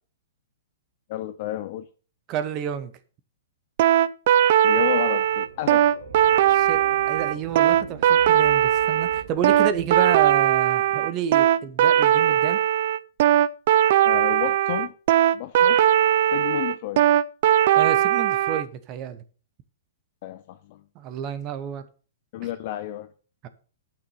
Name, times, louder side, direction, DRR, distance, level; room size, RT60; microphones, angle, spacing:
voice 1, 1.1-1.9 4.6-5.9 14.0-14.9 15.3-15.8 16.3-17.1 20.2-20.8 22.3-23.1, left 13 dB, 45° left, 0.5 m, -31 dB
voice 2, 2.3-2.9 6.5-6.8 7.1-12.6 17.7-19.2 20.9-21.9 23.4-23.5, right 9 dB, 30° right, 1.0 m, -30 dB
sound 1, 3.8-18.6, right 11 dB, 50° right, 0.5 m, -19 dB
sound 2, 4.8-10.6, right 5 dB, 65° right, 2.1 m, -43 dB
9.5 x 6.0 x 5.7 m
hypercardioid pair, 150°, 0 cm